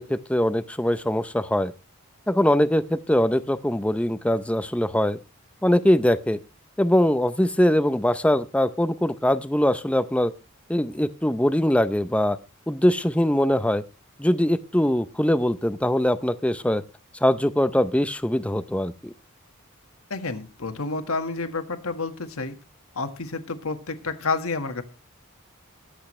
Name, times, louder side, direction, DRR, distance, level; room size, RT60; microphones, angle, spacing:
voice 1, 0.0-1.7 2.3-5.2 5.6-6.4 6.8-10.3 10.7-12.4 12.7-13.8 14.2-16.8 17.2-19.1, left 1 dB, 5° left, 13 dB, 0.5 m, -22 dB
voice 2, 20.1-22.6 22.9-24.8, left 3 dB, 80° left, 7 dB, 1.7 m, -29 dB
22.0 x 8.1 x 3.2 m, 0.31 s
head